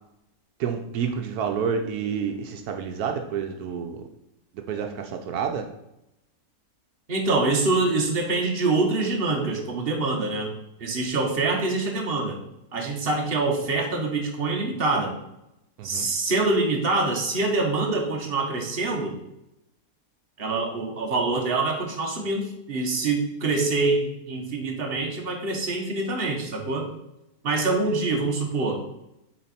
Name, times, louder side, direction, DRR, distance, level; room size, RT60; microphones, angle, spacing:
voice 1, 0.6-4.1 4.5-5.7 15.8-16.1, right 7 dB, 80° right, 4 dB, 1.2 m, -29 dB
voice 2, 7.1-10.5 10.8-12.4 12.7-15.1 15.8-19.1 20.4-26.9 27.4-28.8, right 3 dB, 40° right, 2 dB, 1.4 m, -25 dB
7.4 x 4.4 x 4.2 m, 0.87 s
omnidirectional pair, 1.6 m